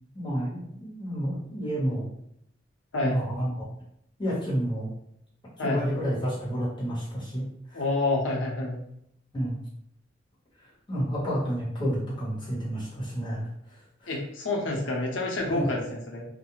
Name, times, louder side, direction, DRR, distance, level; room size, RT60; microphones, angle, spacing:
voice 1, 0.1-2.1 3.0-3.5 4.2-4.9 5.6-7.5 7.7-7.8 9.3-9.6 10.9-13.5 14.0-14.1 15.4-15.7, equal, 25° left, -8 dB, 1.2 m, -30 dB
voice 2, 7.7-8.8 14.1-16.3, left 2 dB, 75° left, -2 dB, 0.7 m, -28 dB
2.4 x 2.1 x 3.0 m, 0.73 s
head